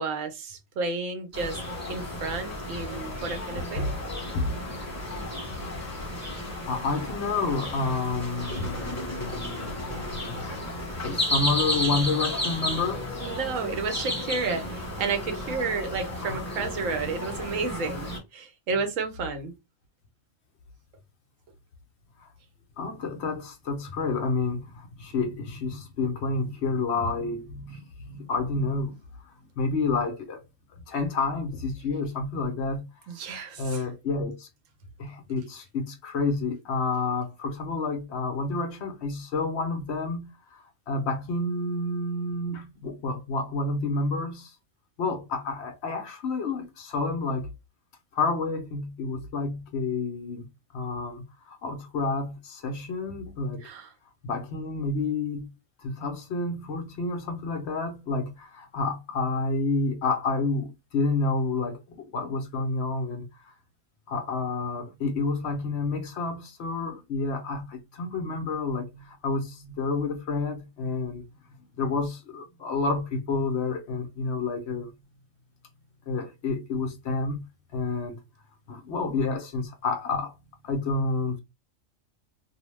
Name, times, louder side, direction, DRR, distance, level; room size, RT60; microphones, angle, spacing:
voice 1, 0.0-1.6 1.9-3.9 8.6-8.7 13.2-19.5 33.1-33.9 53.6-53.9, right 4 dB, 90° right, 1.1 m, -31 dB
sound 1, 1.3-18.2, left 1 dB, 15° left, 0.8 m, -33 dB
voice 2, 5.0-6.1 6.6-13.1 16.2-16.4 22.2-22.3 22.8-30.4 30.7-32.9 33.6-34.5 35.0-44.5 45.0-47.5 48.1-53.7 54.2-55.5 55.8-63.5 64.1-71.2 71.8-74.9 76.1-77.4 77.7-78.2 78.7-80.3 80.6-81.4, left 3 dB, 65° left, 0.9 m, -30 dB
2.7 x 2.1 x 3.0 m
omnidirectional pair, 1.3 m